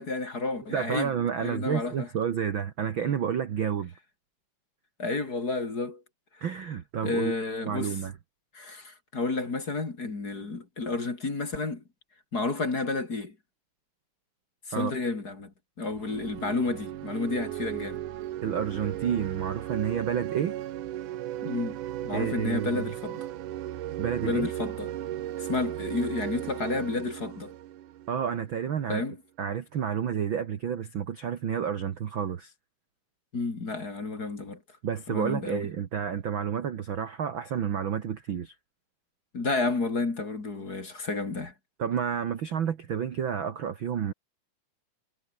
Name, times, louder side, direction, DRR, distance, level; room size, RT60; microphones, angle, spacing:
voice 1, 0.0-1.1 1.4-2.1 5.0-6.0 6.4-6.5 7.0-8.0 8.5-11.8 12.3-13.3 14.7-18.0 21.4-21.8 22.0-23.3 24.2-24.9 25.4-27.5 28.9-29.2 33.3-34.6 35.1-35.7 39.3-41.5, left 3 dB, 30° left, 3.2 m, -31 dB
voice 2, 0.7-3.9 6.4-7.3 7.6-8.1 14.7-14.9 18.4-20.6 22.1-22.9 24.0-24.5 28.1-29.1 29.4-32.5 34.8-38.5 41.8-44.1, right 8 dB, 50° right, 1.6 m, -30 dB
sound 1, 15.9-28.6, right 13 dB, 75° right, 2.7 m, -36 dB
omnidirectional pair, 3.8 m